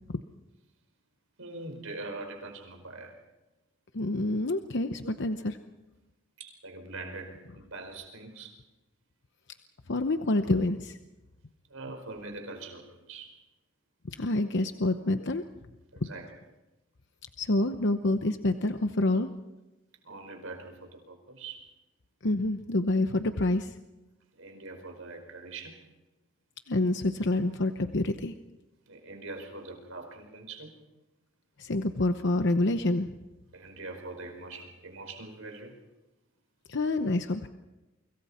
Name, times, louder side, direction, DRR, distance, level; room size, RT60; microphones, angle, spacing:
voice 1, 1.4-3.1 5.0-5.1 6.4-8.5 11.7-13.3 15.9-16.3 20.0-21.7 24.3-25.8 28.9-30.8 33.5-35.8, right 3 dB, 80° right, 4 dB, 5.1 m, -43 dB
voice 2, 3.9-5.6 9.9-11.0 14.0-15.4 16.0-16.1 17.4-19.3 22.2-23.7 26.7-28.3 31.6-33.1 36.7-37.5, left 2 dB, 60° left, 8 dB, 0.9 m, -27 dB
30.0 x 25.0 x 4.4 m, 1.1 s
head